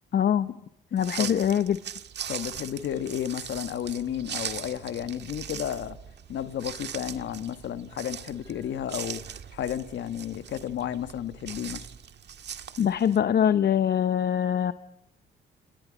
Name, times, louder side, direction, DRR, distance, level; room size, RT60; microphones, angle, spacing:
voice 1, 0.1-0.5 0.9-1.8 12.8-14.7, left 9 dB, 55° left, 11 dB, 0.9 m, -23 dB
sound 1, 1.0-13.2, right 8 dB, 60° right, 1.7 m, -40 dB
voice 2, 2.3-6.0 6.3-9.2 9.5-11.8, left 10 dB, 70° left, 10 dB, 1.6 m, -32 dB
30.0 x 29.0 x 5.3 m, 0.72 s
cardioid pair, 90°, 20 cm